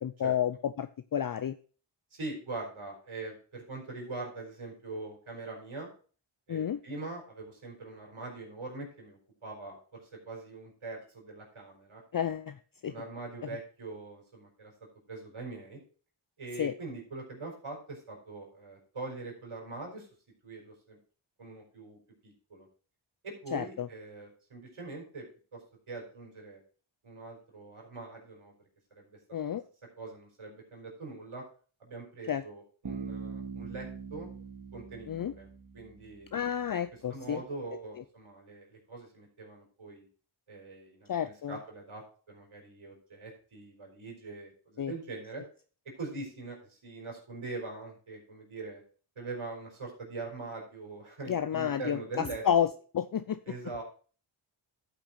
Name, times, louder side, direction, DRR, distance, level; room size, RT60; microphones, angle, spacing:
voice 1, 0.0-1.6 6.5-6.8 12.1-12.6 12.8-12.9 16.6-16.7 23.5-23.9 29.3-29.6 32.3-32.4 35.1-35.3 36.3-37.4 41.1-41.6 44.8-44.9 51.3-52.7 52.9-53.4, left 9 dB, 45° left, 12 dB, 0.5 m, -30 dB
voice 2, 2.1-5.9 6.5-12.2 12.9-14.7 15.1-15.8 16.4-20.1 20.4-21.0 21.4-22.7 23.2-25.2 25.5-26.6 27.0-28.5 28.9-29.2 29.5-29.6 30.0-31.4 31.8-34.3 34.7-35.5 35.7-36.3 37.1-40.1 40.5-45.4 45.8-48.8 49.2-52.4 53.5-53.8, right 3 dB, 75° right, 0 dB, 4.3 m, -43 dB
Bass guitar, 32.8-36.6, right 5 dB, 45° right, 2.2 m, -42 dB
11.5 x 5.9 x 4.2 m, 0.40 s
cardioid pair, 45°, 49 cm